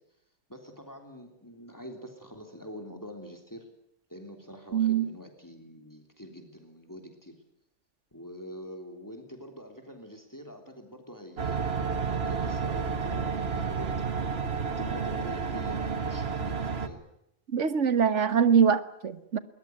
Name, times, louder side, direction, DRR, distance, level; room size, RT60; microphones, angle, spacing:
voice 1, 0.5-3.7 4.1-7.4 8.1-14.0 14.6-17.0, equal, 15° left, 5 dB, 3.4 m, -45 dB
voice 2, 4.7-5.1 17.5-19.4, right 7 dB, 85° right, 14 dB, 1.7 m, -23 dB
sound 1, 11.4-16.9, right 5 dB, 60° right, 1.8 m, -31 dB
22.0 x 20.5 x 9.4 m, 0.78 s
omnidirectional pair, 1.2 m